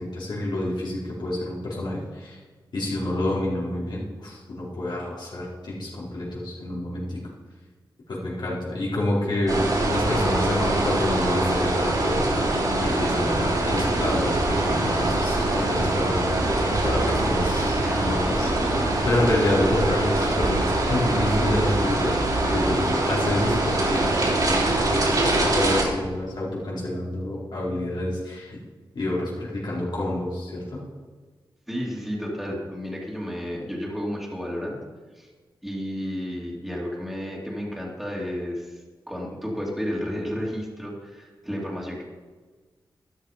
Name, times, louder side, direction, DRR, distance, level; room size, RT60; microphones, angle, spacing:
voice 1, 0.0-2.4 2.7-7.2 8.1-9.6 9.9-12.5 12.8-16.4 16.8-18.5 19.0-22.2 22.5-28.6 28.9-30.8, left 1 dB, 65° left, -6 dB, 4.5 m, -28 dB
sound 1, 9.5-25.8, right 2 dB, 50° right, 3.2 m, -23 dB
voice 2, 17.8-18.9 31.7-34.8 35.1-35.3 35.6-42.0, equal, ahead, -4 dB, 2.7 m, -32 dB
13.0 x 12.0 x 5.1 m, 1.4 s
wide cardioid pair, 125°, 8 cm